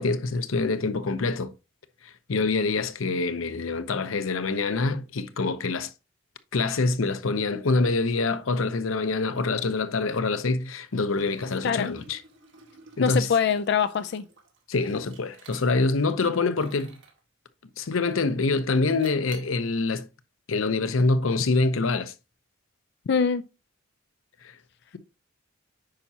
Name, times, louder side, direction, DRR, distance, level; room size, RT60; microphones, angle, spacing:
voice 1, 0.0-1.5 2.0-5.9 6.5-12.2 13.0-13.3 14.7-17.0 17.8-20.1 20.5-22.1 24.4-24.5, left 3 dB, 90° left, 0.7 m, -25 dB
Liquid, 11.0-16.0 16.5-17.2 17.8-18.3 19.0-19.6, right 4 dB, 65° right, 2.0 m, -52 dB
voice 2, 11.6-11.9 13.0-14.2 23.1-23.4, left 6 dB, 55° left, 0.4 m, -24 dB
8.8 x 5.6 x 2.7 m
head